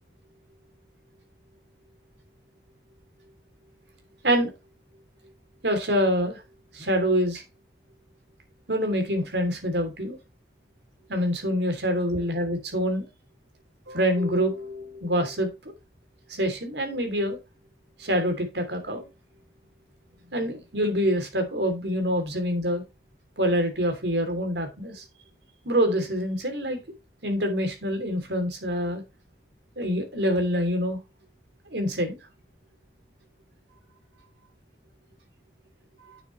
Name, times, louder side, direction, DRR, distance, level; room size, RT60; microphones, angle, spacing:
voice 1, 5.6-6.4 6.7-7.4 8.7-10.2 11.1-13.1 13.9-15.7 16.3-17.4 18.0-19.0 20.3-22.8 23.4-25.0 25.6-26.8 27.2-29.0 29.8-31.0 31.7-32.2 36.0-36.2, equal, 80° right, 5 dB, 3.1 m, -26 dB
9.3 x 6.9 x 3.2 m, 0.25 s
head